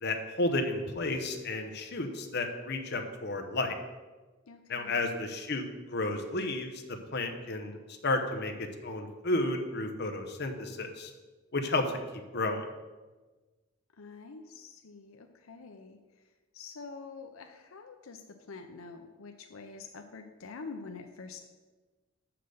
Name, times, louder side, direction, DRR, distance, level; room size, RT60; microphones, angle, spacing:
voice 1, 0.0-3.8 4.7-6.8 7.1-7.8 8.0-11.1 11.5-12.7, left 2 dB, 55° left, 5 dB, 0.9 m, -32 dB
voice 2, 4.5-5.1 14.0-16.0 16.5-21.4, left 4 dB, 85° left, 6 dB, 0.6 m, -46 dB
6.6 x 5.9 x 6.8 m, 1.3 s
head